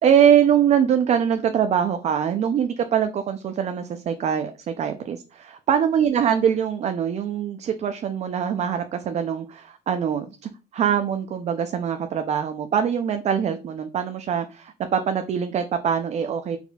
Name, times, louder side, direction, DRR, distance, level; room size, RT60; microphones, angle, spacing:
voice 1, 0.0-10.3 10.7-16.6, right 8 dB, 40° right, 0.4 m, -23 dB
4.2 x 4.0 x 2.2 m
cardioid pair, 110°, 17 cm